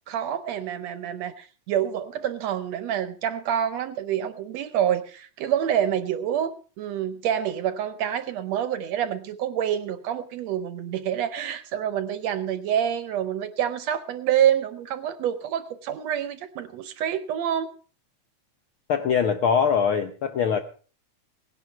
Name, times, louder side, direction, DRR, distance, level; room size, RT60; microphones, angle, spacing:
voice 1, 0.0-17.7, right 10 dB, 70° right, 12 dB, 1.8 m, -27 dB
voice 2, 18.9-20.6, left 7 dB, 80° left, 8 dB, 1.2 m, -22 dB
17.5 x 11.0 x 4.5 m, 0.39 s
omnidirectional pair, 3.4 m